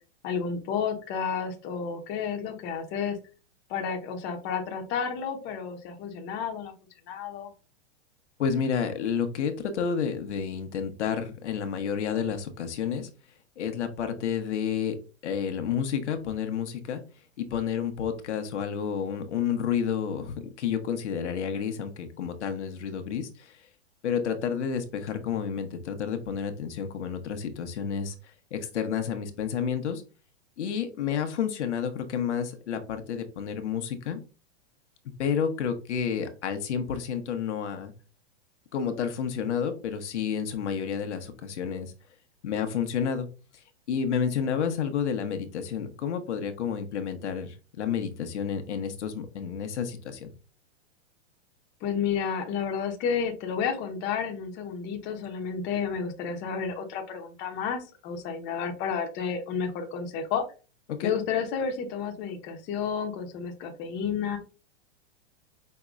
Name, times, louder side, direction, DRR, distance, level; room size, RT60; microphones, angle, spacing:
voice 1, 0.2-3.2 3.7-6.7 7.1-7.5 51.8-60.4 61.0-64.4, left 6 dB, 30° left, 4 dB, 0.9 m, -31 dB
voice 2, 8.4-13.1 13.6-15.0 15.2-17.0 17.4-23.7 24.0-30.0 30.6-34.2 35.2-37.9 38.7-41.9 42.4-43.3 43.5-50.3 61.0-61.1, left 7 dB, 85° left, 7 dB, 0.9 m, -30 dB
5.3 x 2.8 x 2.4 m, 0.34 s
hypercardioid pair, 140°, 34 cm